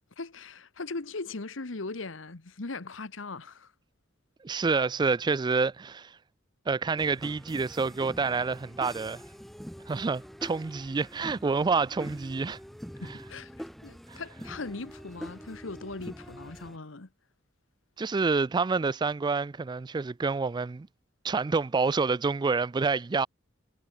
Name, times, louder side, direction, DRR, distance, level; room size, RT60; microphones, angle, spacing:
voice 1, 0.2-3.7 13.0-13.5 13.8-17.1, left 3 dB, 70° left, 1.2 m, -39 dB
voice 2, 4.4-6.2 6.7-9.2 9.9-12.6 14.1-14.2 18.0-20.9 21.2-23.3, right 4 dB, 20° right, 0.3 m, -28 dB
sound 1, 7.0-16.8, equal, ahead, 1.3 m, -44 dB
head